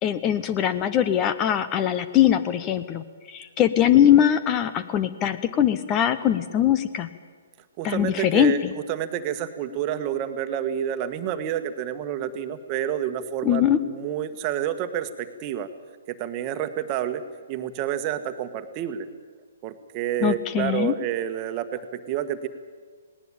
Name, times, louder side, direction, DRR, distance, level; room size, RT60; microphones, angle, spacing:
voice 1, 0.0-7.1 7.8-8.7 13.4-13.8 20.2-20.9, left 10 dB, 25° left, 13 dB, 0.9 m, -21 dB
voice 2, 7.8-15.7 16.1-17.2 17.5-19.1 19.6-22.5, right 10 dB, 30° right, 9 dB, 1.5 m, -29 dB
19.0 x 18.5 x 8.8 m, 1.5 s
figure-of-eight pair, 130°, 0 cm